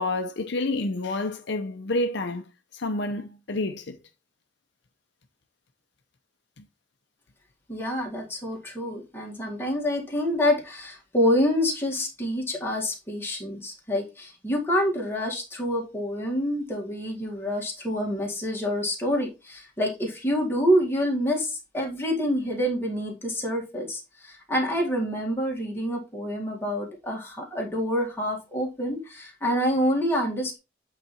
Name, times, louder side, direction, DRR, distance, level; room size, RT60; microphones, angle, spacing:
voice 1, 0.0-2.4 2.7-4.0, left 2 dB, 65° left, 0.7 m, -28 dB
voice 2, 7.7-30.6, equal, 10° left, 2.0 m, -27 dB
8.2 x 4.0 x 4.3 m
head